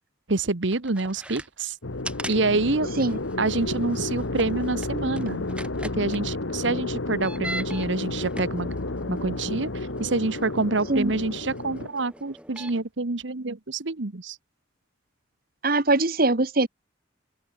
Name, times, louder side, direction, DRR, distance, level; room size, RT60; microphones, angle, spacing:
voice 1, 0.3-1.8 2.3-2.9 3.4-5.4 5.9-8.7 9.1-14.4, right 3 dB, 70° right, 1.2 m, -27 dB
sound 1, 0.7-1.5 2.0-2.4 2.7-2.8 3.0-6.2 7.1-7.9 8.2-12.8, right 1 dB, 5° right, 3.8 m, -41 dB
sound 2, 1.8-11.9, left 2 dB, 85° left, 1.7 m, -31 dB
voice 2, 15.6-16.7, right 2 dB, 50° right, 1.5 m, -22 dB
open air
head